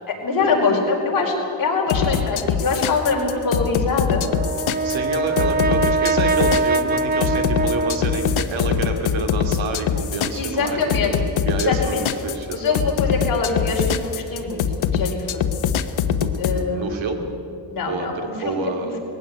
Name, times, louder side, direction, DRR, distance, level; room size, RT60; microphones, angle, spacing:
voice 1, 0.1-4.3 10.3-11.1 11.6-12.0 12.5-15.4 16.4-16.9 17.7-18.9, left 4 dB, 45° left, -1 dB, 4.7 m, -23 dB
sound 1, 1.9-16.6, left 8 dB, 90° left, 1.1 m, -23 dB
Brass instrument, 4.2-8.6, right 3 dB, 20° right, 0.5 m, -23 dB
voice 2, 4.8-10.8 11.4-12.9 16.2-17.3 17.9-19.0, right 3 dB, 75° right, 4 dB, 2.8 m, -28 dB
20.5 x 16.5 x 9.4 m, 3.0 s
wide cardioid pair, 165°, 46 cm